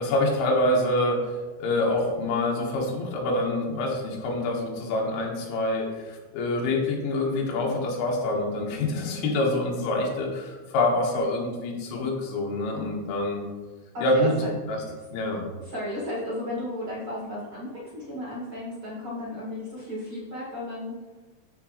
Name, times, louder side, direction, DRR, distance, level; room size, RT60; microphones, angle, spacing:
voice 1, 0.0-13.4 14.0-14.4 14.7-14.8 15.1-15.4, left 1 dB, 80° left, -1 dB, 3.6 m, -26 dB
voice 2, 13.9-14.5 15.6-20.9, left 1 dB, 50° right, -7 dB, 1.5 m, -34 dB
13.0 x 4.9 x 3.2 m, 1.3 s
omnidirectional pair, 5.3 m